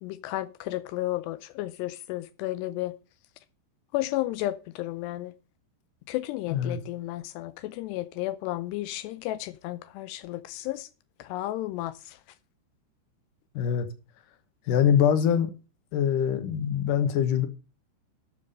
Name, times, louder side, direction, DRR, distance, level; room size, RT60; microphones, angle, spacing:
voice 1, 0.0-3.0 3.9-5.3 6.1-10.9 11.2-12.2, left 16 dB, 80° left, 2.6 m, -33 dB
voice 2, 13.5-13.9 14.7-15.5 15.9-17.5, left 8 dB, 65° left, 2.3 m, -23 dB
13.0 x 6.9 x 5.3 m
omnidirectional pair, 5.1 m